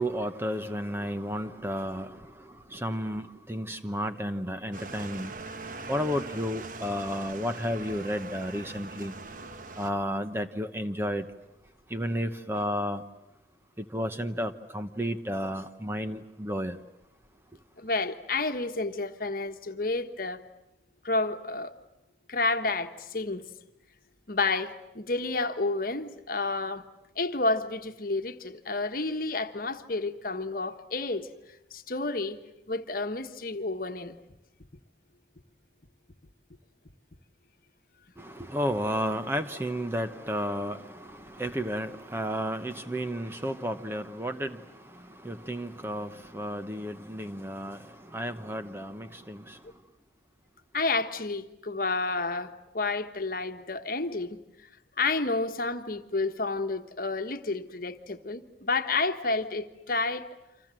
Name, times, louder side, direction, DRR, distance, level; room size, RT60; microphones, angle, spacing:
voice 1, 0.0-5.3 5.9-9.1 9.8-11.3 11.9-13.0 13.8-16.8 38.2-49.6, equal, 15° right, 1.0 m, -32 dB
sound 1, 4.7-9.9, right 3 dB, 45° right, 1.1 m, -42 dB
voice 2, 17.8-20.4 21.0-21.7 22.3-23.4 24.3-26.8 27.2-31.3 31.7-32.4 32.7-34.2 50.7-54.4 55.0-60.3, left 3 dB, 50° left, 1.4 m, -30 dB
29.0 x 26.0 x 7.7 m
head